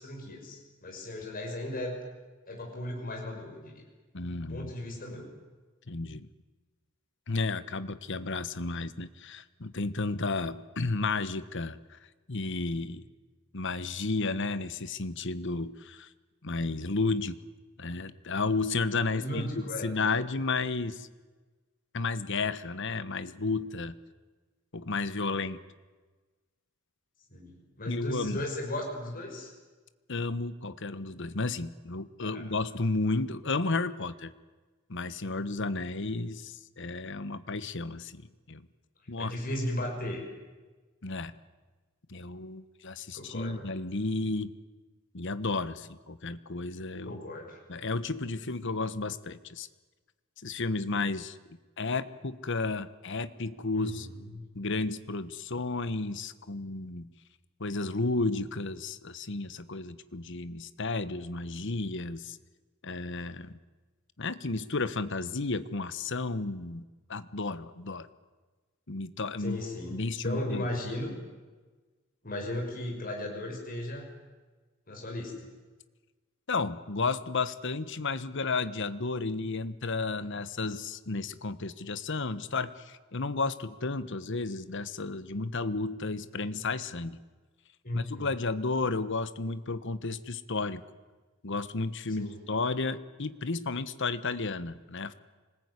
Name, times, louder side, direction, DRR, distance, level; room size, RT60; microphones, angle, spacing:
voice 1, 0.0-1.9 2.5-3.8 4.5-5.3 19.1-19.9 27.3-29.5 32.2-32.6 39.2-40.2 43.1-43.6 47.1-47.6 53.7-54.4 69.4-71.2 72.2-74.1 74.9-75.5 87.8-88.3 92.2-92.4, left 1 dB, 45° left, 1 dB, 5.9 m, -36 dB
voice 2, 4.1-4.7 5.9-6.3 7.3-12.0 12.3-13.0 13.5-16.1 16.4-17.4 17.8-21.1 21.9-23.9 24.7-25.6 27.9-28.4 30.1-34.3 34.9-38.2 38.5-38.6 39.1-39.3 41.0-41.3 42.1-44.5 45.1-47.2 47.7-49.7 50.4-54.1 54.5-57.1 57.6-62.4 62.8-63.5 64.2-66.8 67.1-68.1 68.9-69.6 69.9-70.7 76.5-87.2 87.9-90.8 91.4-95.1, left 3 dB, 60° left, 14 dB, 1.3 m, -32 dB
26.0 x 20.0 x 9.8 m, 1.3 s
head